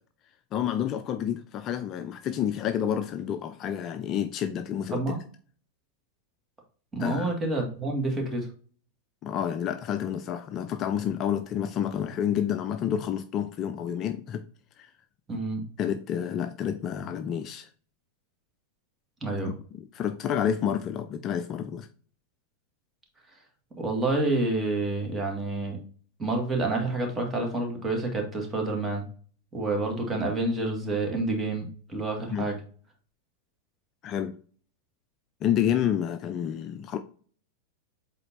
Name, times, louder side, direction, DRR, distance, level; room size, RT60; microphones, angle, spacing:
voice 1, 0.5-5.0 7.0-7.4 9.2-14.4 14.8-14.9 15.8-17.7 19.4-21.9 32.3-32.5 34.0-34.4 35.4-37.0, left 9 dB, 35° left, 0.5 m, -29 dB
voice 2, 6.9-8.5 15.3-15.6 19.2-19.5 23.8-25.8 26.2-29.0 29.5-32.5, right 2 dB, 15° right, 2.1 m, -28 dB
7.8 x 4.3 x 2.8 m
figure-of-eight pair, 90°, 0 cm